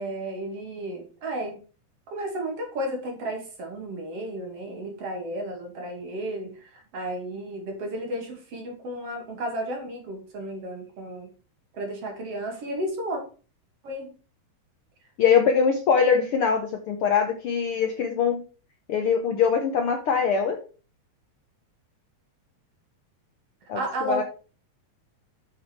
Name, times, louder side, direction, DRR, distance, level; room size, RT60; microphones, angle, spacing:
voice 1, 0.0-1.6 2.1-11.3 11.7-13.2 13.8-14.1 23.7-24.2, right 1 dB, 55° right, 2 dB, 3.2 m, -33 dB
voice 2, 15.2-18.4 18.9-20.6 23.7-23.8 24.0-24.2, left 6 dB, 65° left, 5 dB, 1.4 m, -22 dB
7.5 x 6.5 x 4.6 m, 0.37 s
omnidirectional pair, 3.4 m